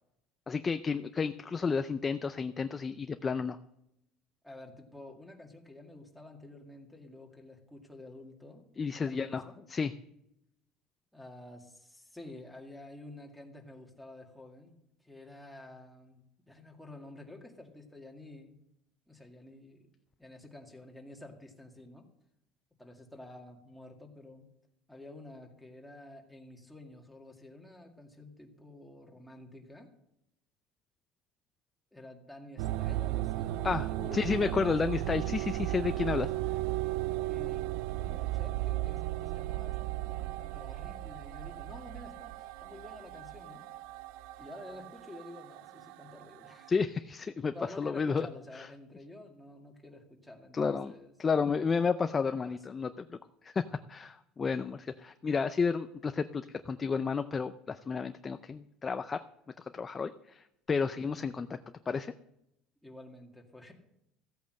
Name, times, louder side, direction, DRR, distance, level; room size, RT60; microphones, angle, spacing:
voice 1, 0.5-3.6 8.8-9.4 9.7-9.9 33.6-33.9 34.1-36.3 46.7-48.3 48.6-48.7 50.5-50.9 51.2-53.1 53.4-53.6 53.9-59.2 59.6-61.6 61.9-62.1, left 5 dB, 20° left, 10 dB, 0.4 m, -31 dB
voice 2, 4.4-8.7 8.9-9.6 11.1-18.6 19.1-19.9 20.2-22.1 22.8-24.5 24.9-29.9 31.9-34.6 36.0-36.2 37.3-37.7 38.0-43.6 44.4-46.7 47.5-51.1 52.3-52.6 62.8-63.7, left 2 dB, ahead, 1 dB, 2.0 m, -50 dB
sound 1, 32.6-46.7, right 16 dB, 75° right, 0.4 m, -35 dB
14.5 x 8.5 x 6.4 m, 0.83 s
cardioid pair, 140°, 0 cm